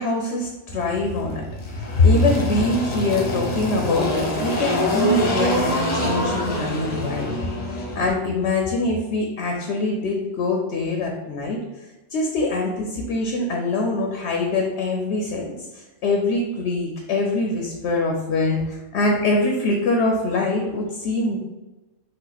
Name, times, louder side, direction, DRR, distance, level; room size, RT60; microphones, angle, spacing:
voice 1, 0.0-1.5 2.0-7.4 7.9-21.4, left 2 dB, 65° left, 1 dB, 0.9 m, -23 dB
Engine, 0.7-8.1, equal, 35° left, 0.8 m, -25 dB
4.9 x 2.4 x 4.0 m, 1.1 s
omnidirectional pair, 1.3 m